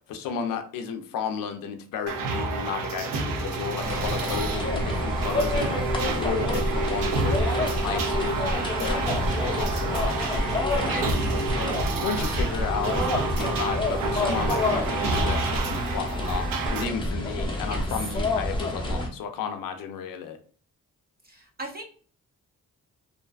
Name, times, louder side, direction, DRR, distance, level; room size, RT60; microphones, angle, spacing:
voice 1, 0.0-20.4, left 7 dB, 70° left, 6 dB, 0.5 m, -33 dB
sound 1, 2.1-16.8, right 3 dB, 70° right, 0.6 m, -29 dB
sound 2, 3.8-19.1, left 1 dB, 15° left, 0.7 m, -28 dB
voice 2, 21.2-21.8, right 2 dB, 30° right, 1 dB, 0.5 m, -38 dB
2.5 x 2.2 x 2.3 m, 0.42 s
supercardioid pair, 60°, 34 cm